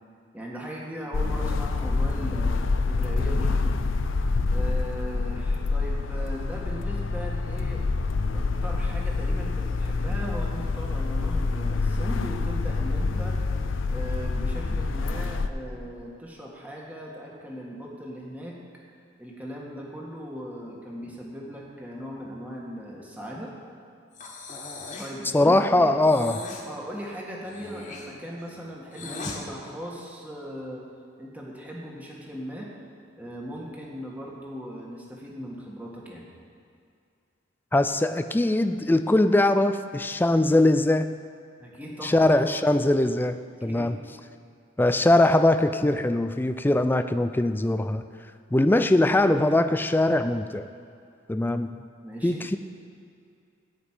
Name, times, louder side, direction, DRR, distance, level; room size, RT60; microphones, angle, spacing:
voice 1, 0.3-3.5 4.5-7.8 8.3-13.4 13.9-18.6 19.2-23.5 25.0-26.0 26.7-30.8 31.2-32.7 33.2-36.3 41.6-42.3 43.6-43.9 52.0-52.4, equal, 10° right, -3 dB, 1.6 m, -38 dB
sound 1, 1.1-15.5, left 3 dB, 80° left, 0.6 m, -27 dB
Breathing, 24.1-25.2 26.0-26.7 27.4-29.4, left 3 dB, 40° left, 1.6 m, -38 dB
voice 2, 25.3-26.4 37.7-41.1 42.0-44.0 44.8-48.0 48.5-50.7 51.3-51.8 52.2-52.6, left 1 dB, 10° left, 9 dB, 0.4 m, -21 dB
15.5 x 5.2 x 8.9 m, 2.4 s
head